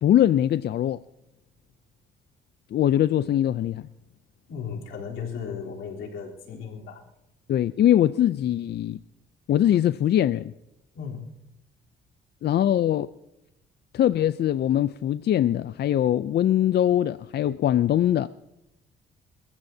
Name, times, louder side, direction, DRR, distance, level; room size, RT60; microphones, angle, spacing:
voice 1, 0.0-1.0 2.7-3.8 7.5-9.0 9.5-10.5 12.4-13.1 13.9-18.3, left 11 dB, 55° left, 0.5 m, -22 dB
voice 2, 4.5-7.0 10.9-11.3, left 6 dB, 85° left, 3.7 m, -35 dB
29.0 x 14.5 x 2.8 m
cardioid pair, 90°, 20 cm